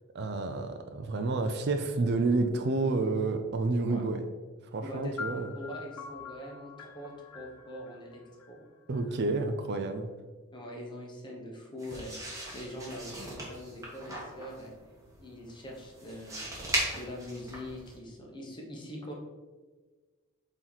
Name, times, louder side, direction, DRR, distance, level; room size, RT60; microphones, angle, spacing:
voice 1, 0.1-4.2 4.7-5.5 8.9-10.1, right 3 dB, 50° right, 7 dB, 0.4 m, -29 dB
voice 2, 4.8-8.6 10.5-14.7 15.2-16.5 16.9-19.1, left 1 dB, 20° left, -1 dB, 1.1 m, -43 dB
sound 1, 5.2-9.0, left 5 dB, 90° left, 0.9 m, -44 dB
sound 2, 11.8-18.0, right 1 dB, 15° right, 1.4 m, -38 dB
7.9 x 3.1 x 4.0 m, 1.3 s
head